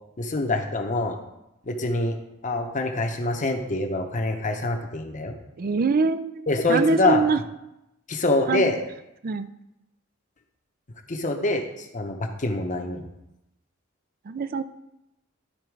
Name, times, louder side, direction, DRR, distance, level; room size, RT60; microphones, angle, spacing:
voice 1, 0.2-1.2 1.6-2.2 2.4-5.3 6.5-7.2 8.1-8.8 11.1-13.0, left 2 dB, 35° left, 4 dB, 0.9 m, -25 dB
voice 2, 5.6-7.4 8.5-8.7 9.2-9.5 14.2-14.6, right 4 dB, 45° right, 13 dB, 0.4 m, -24 dB
11.5 x 4.4 x 4.7 m, 0.91 s
head